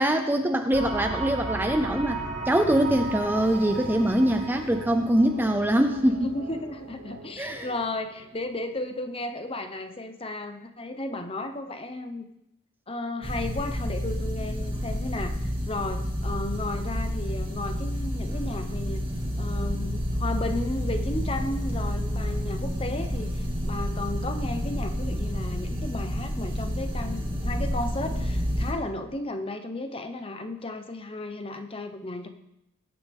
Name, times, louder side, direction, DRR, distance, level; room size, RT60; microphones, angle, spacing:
voice 1, 0.0-2.2 2.5-6.3 7.4-7.7, right 1 dB, 10° right, 6 dB, 0.6 m, -23 dB
sound 1, 0.7-8.8, right 2 dB, 65° right, 3.4 m, -36 dB
voice 2, 6.2-12.3 12.9-19.0 19.4-32.3, left 2 dB, 25° left, 7 dB, 1.0 m, -34 dB
sound 2, 13.2-28.7, equal, 25° right, 2.3 m, -29 dB
21.0 x 9.5 x 3.6 m, 0.84 s
head